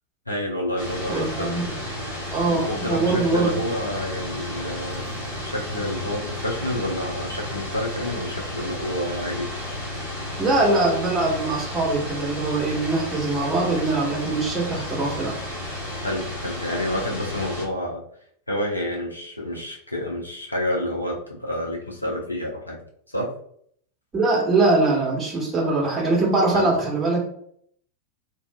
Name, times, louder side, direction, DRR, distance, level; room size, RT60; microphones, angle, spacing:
voice 1, 0.3-1.6 2.5-5.2 5.4-9.5 16.0-18.0 18.5-22.8 23.1-23.3 26.5-26.7, left 1 dB, 85° left, -1 dB, 0.6 m, -29 dB
sound 1, 0.8-17.7, left 1 dB, 65° left, 1.1 m, -33 dB
voice 2, 1.1-1.6 2.3-3.6 10.4-15.4 24.1-27.2, right 3 dB, 15° right, -3 dB, 1.0 m, -22 dB
2.7 x 2.3 x 2.2 m, 0.64 s
figure-of-eight pair, 90°, 0 cm